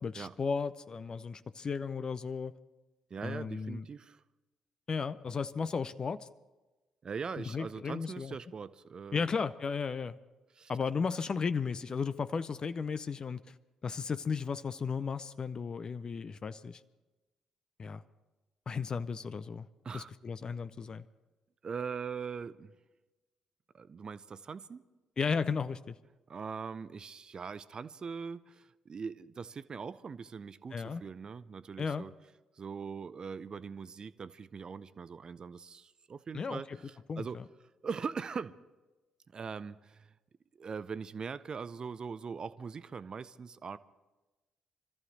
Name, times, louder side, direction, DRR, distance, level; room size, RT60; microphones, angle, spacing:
voice 1, 0.0-2.5 3.2-3.9 4.9-6.3 7.5-8.3 9.1-10.1 10.7-13.5 13.8-16.8 17.8-18.0 18.7-19.7 19.9-21.1 25.2-26.0 30.7-31.0 31.8-32.1 36.3-36.6 37.1-37.4, left 5 dB, 40° left, 13 dB, 0.6 m, -34 dB
voice 2, 3.1-4.2 7.0-9.3 10.5-10.7 19.8-20.1 21.6-22.7 23.7-24.8 26.3-32.1 32.5-37.4 37.8-38.6 39.3-40.1 40.6-43.8, right 5 dB, 40° right, 16 dB, 0.6 m, -41 dB
25.0 x 14.0 x 4.0 m, 1.1 s
figure-of-eight pair, 40°, 2 cm